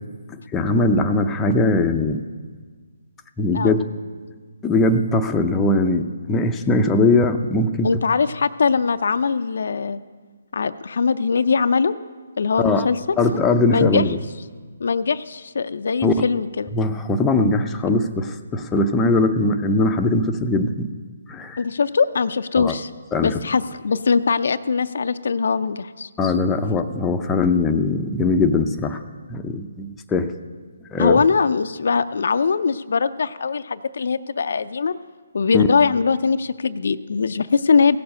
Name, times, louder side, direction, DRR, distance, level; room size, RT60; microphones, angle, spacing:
voice 1, 0.3-2.2 3.4-3.8 4.6-7.9 12.6-12.9 13.2-14.2 16.0-16.1 16.7-20.9 21.3-21.6 22.6-22.7 23.1-23.4 26.2-29.0 29.3-30.3 30.9-31.2 35.5-35.7, left 2 dB, 10° left, 4 dB, 0.6 m, -20 dB
voice 2, 7.8-10.0 10.5-11.9 12.4-13.2 13.7-14.0 14.8-16.7 21.6-22.9 23.2-26.1 31.0-35.0 35.3-38.0, left 5 dB, 65° left, 11 dB, 0.4 m, -21 dB
16.5 x 6.9 x 6.5 m, 1.5 s
hypercardioid pair, 150°, 0 cm